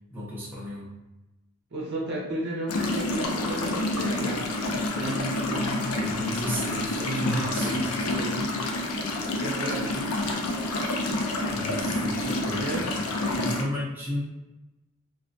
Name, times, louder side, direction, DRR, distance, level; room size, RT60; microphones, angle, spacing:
voice 1, 0.1-0.9 6.0-7.8 11.5-12.9 13.2-14.2, left 1 dB, 10° right, -8 dB, 0.7 m, -33 dB
voice 2, 1.7-6.0 7.0-8.5 9.3-10.4 12.5-12.9, right 1 dB, 50° right, -4 dB, 0.7 m, -33 dB
sound 1, 2.7-13.6, left 2 dB, 85° left, 0.4 m, -28 dB
2.3 x 2.2 x 2.5 m, 1.0 s
head